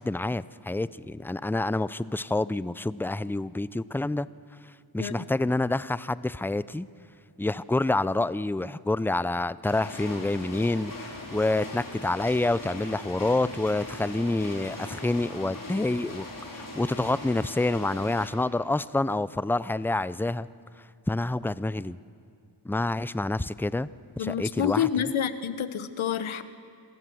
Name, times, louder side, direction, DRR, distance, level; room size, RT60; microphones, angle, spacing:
voice 1, 0.0-4.3 4.9-6.9 7.4-16.3 16.5-20.5 21.1-22.0 22.6-23.9 24.2-24.9, left 2 dB, 5° left, 17 dB, 0.4 m, -27 dB
sound 1, 9.6-18.3, left 1 dB, 40° left, 4.9 m, -40 dB
voice 2, 24.2-26.4, left 9 dB, 75° left, 12 dB, 1.1 m, -28 dB
26.5 x 15.0 x 7.8 m, 2.5 s
cardioid pair, 50°, 49 cm